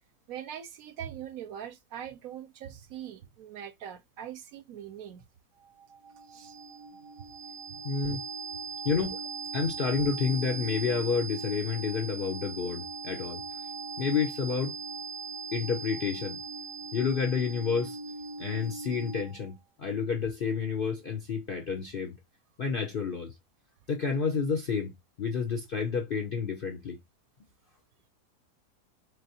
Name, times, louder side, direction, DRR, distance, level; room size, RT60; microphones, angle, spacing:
voice 1, 0.3-5.2 6.3-6.5 7.7-7.8, right 9 dB, 70° right, 0.9 m, -42 dB
sound 1, 5.6-19.5, right 4 dB, 85° right, 1.2 m, -40 dB
voice 2, 7.8-8.2 8.8-9.2 9.5-13.4 14.0-14.8 15.5-16.4 16.9-18.0 18.4-22.2 22.6-23.3 23.9-24.9 25.2-27.0, left 5 dB, 60° left, 0.5 m, -30 dB
4.0 x 3.3 x 2.7 m
omnidirectional pair, 1.7 m